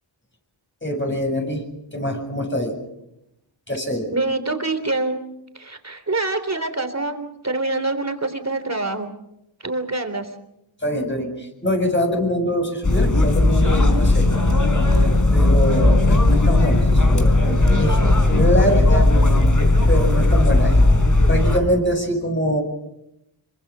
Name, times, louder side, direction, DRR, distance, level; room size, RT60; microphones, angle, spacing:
voice 1, 0.8-1.6 1.9-2.7 3.7-4.1 10.8-14.4 15.3-17.3 17.8-18.0 18.3-19.1 19.9-20.8 21.3-22.6, equal, 25° left, 3 dB, 7.4 m, -24 dB
voice 2, 4.1-5.2 5.5-9.1 9.6-10.3, right 2 dB, 35° right, 8 dB, 3.5 m, -25 dB
sound 1, 12.8-21.6, left 2 dB, 40° left, 4.2 m, -16 dB
26.5 x 24.5 x 6.2 m, 0.85 s
wide cardioid pair, 60°, 46 cm